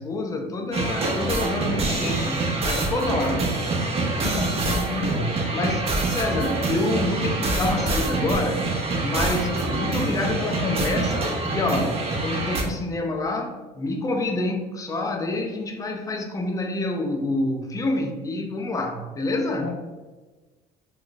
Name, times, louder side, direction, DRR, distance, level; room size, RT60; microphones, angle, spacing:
voice 1, 0.0-3.5 4.2-4.3 5.1-8.7 9.0-19.7, left 2 dB, 20° left, 3 dB, 0.5 m, -27 dB
sound 1, 0.7-12.6, right 2 dB, 35° right, 0.6 m, -25 dB
voice 2, 4.2-5.3 19.6-19.7, left 5 dB, 85° left, 3 dB, 0.4 m, -30 dB
2.4 x 2.3 x 3.7 m, 1.3 s
supercardioid pair, 90°, 16 cm